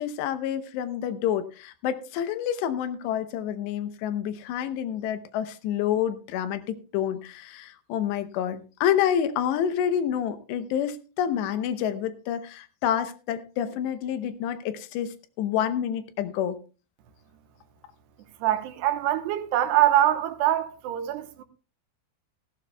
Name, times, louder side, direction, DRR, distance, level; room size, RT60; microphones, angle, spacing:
voice 1, 0.0-16.6, left 9 dB, 85° left, 3.1 m, -28 dB
voice 2, 18.4-21.4, right 12 dB, 80° right, 3.0 m, -24 dB
16.5 x 15.5 x 2.3 m
omnidirectional pair, 4.9 m